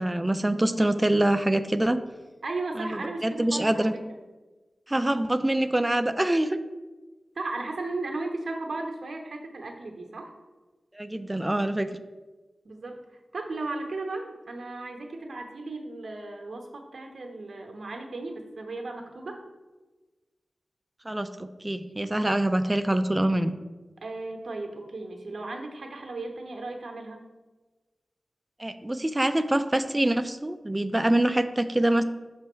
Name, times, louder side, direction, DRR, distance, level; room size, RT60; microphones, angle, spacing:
voice 1, 0.0-2.0 2.8-3.9 4.9-6.6 10.9-11.9 21.1-23.5 28.6-32.0, right 1 dB, 15° right, 10 dB, 0.3 m, -25 dB
voice 2, 2.4-4.0 7.3-10.3 12.6-13.0 13.3-19.4 24.0-27.3, right 2 dB, 70° right, 3 dB, 0.9 m, -35 dB
6.1 x 3.3 x 5.5 m, 1.2 s
wide cardioid pair, 105°, 0 cm